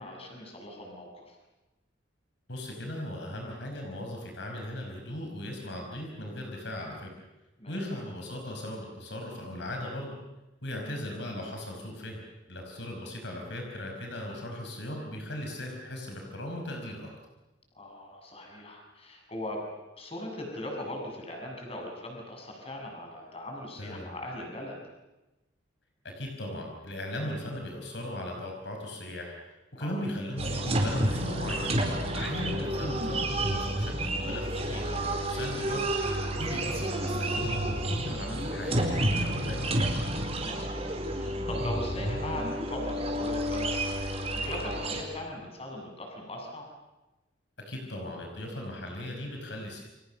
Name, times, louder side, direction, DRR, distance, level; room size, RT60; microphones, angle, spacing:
voice 1, 0.0-1.4 7.6-7.8 10.9-11.0 17.7-19.6 20.0-24.8 29.8-30.0 36.3-36.5 40.3-46.7, left 1 dB, 30° left, 2 dB, 7.5 m, -40 dB
voice 2, 2.5-7.1 7.7-10.2 10.6-17.1 23.8-24.2 26.0-29.3 29.7-31.8 32.1-39.7 47.6-49.8, left 1 dB, 65° left, 1 dB, 5.3 m, -38 dB
sound 1, 30.4-45.0, right 1 dB, 35° right, 4.5 m, -30 dB
29.5 x 26.0 x 6.9 m, 1.0 s
head